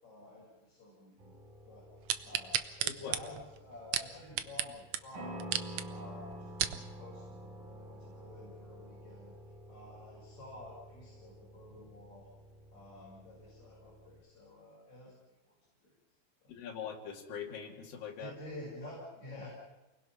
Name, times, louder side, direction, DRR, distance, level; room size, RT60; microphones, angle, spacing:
voice 1, 0.0-1.4 1.7-1.9 2.2-2.6 3.0-5.5 5.9-9.3 9.7-12.3 12.7-15.2 15.5-15.6 15.8-15.9 16.4-16.5 18.2-19.5, left 1 dB, 50° left, -5 dB, 7.1 m, -50 dB
sound 1, 1.2-14.2, right 1 dB, 65° right, 4.8 m, -50 dB
sound 2, 2.1-4.7 4.9-5.0 5.4-5.8 6.3-6.8 7.4-7.5, right 11 dB, 90° right, 1.4 m, -33 dB
voice 2, 2.8-3.2 16.5-18.3, left 7 dB, 70° left, 0 dB, 4.3 m, -42 dB
28.5 x 20.5 x 5.9 m, 1.0 s
omnidirectional pair, 4.3 m